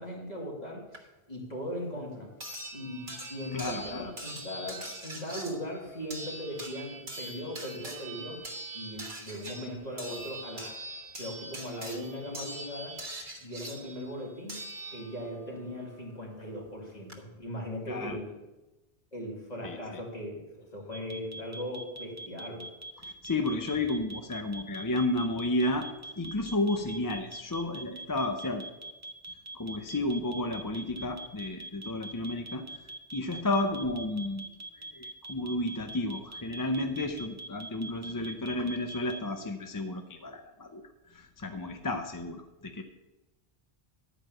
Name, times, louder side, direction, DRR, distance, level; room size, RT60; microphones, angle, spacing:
voice 1, 0.0-2.3 2.7-8.4 8.7-10.8 11.2-13.0 13.4-14.6 14.9-18.4 19.1-22.7, equal, 40° left, -3 dB, 2.7 m, -39 dB
sound 1, 0.9-1.0 2.4-15.4 16.7-16.8 17.1-17.2, right 1 dB, 55° right, 1.6 m, -42 dB
voice 2, 3.5-4.1 17.9-18.2 19.6-20.0 23.0-25.9 26.2-28.6 29.5-32.6 33.1-34.4 34.9-40.8 41.1-42.8, left 2 dB, 25° left, 6 dB, 0.5 m, -32 dB
sound 2, 20.9-39.2, right 2 dB, 15° right, 0.8 m, -42 dB
11.0 x 4.9 x 7.7 m, 1.0 s
omnidirectional pair, 1.1 m